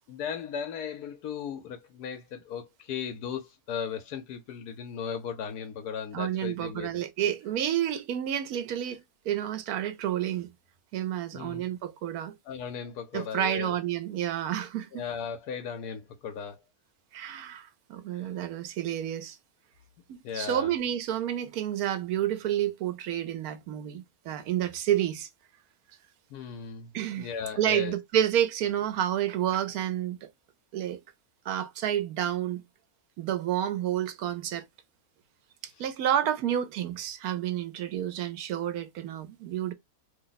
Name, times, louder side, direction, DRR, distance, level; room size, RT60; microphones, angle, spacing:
voice 1, 0.1-6.9 11.3-11.6 12.5-13.7 14.9-16.6 20.2-20.7 26.3-26.9 27.2-27.9, left 7 dB, 85° left, 1.2 m, -36 dB
voice 2, 6.1-10.5 10.9-12.3 13.1-15.0 17.1-19.4 20.1-25.3 26.9-27.3 27.6-30.2 30.7-31.0 31.5-32.6 33.2-34.6 35.8-39.7, right 11 dB, 75° right, 1.1 m, -30 dB
3.0 x 2.1 x 3.9 m
omnidirectional pair, 1.6 m